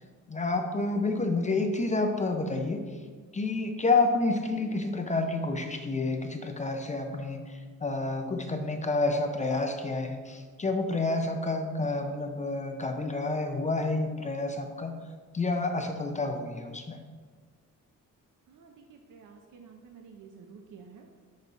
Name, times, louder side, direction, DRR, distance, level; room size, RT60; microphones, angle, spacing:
voice 1, 0.3-3.0 3.3-14.9 15.3-17.0, left 3 dB, 25° left, 5 dB, 0.4 m, -29 dB
voice 2, 18.5-21.1, right 5 dB, 70° right, 3 dB, 0.6 m, -51 dB
6.0 x 5.4 x 3.9 m, 1.6 s
wide cardioid pair, 145°, 33 cm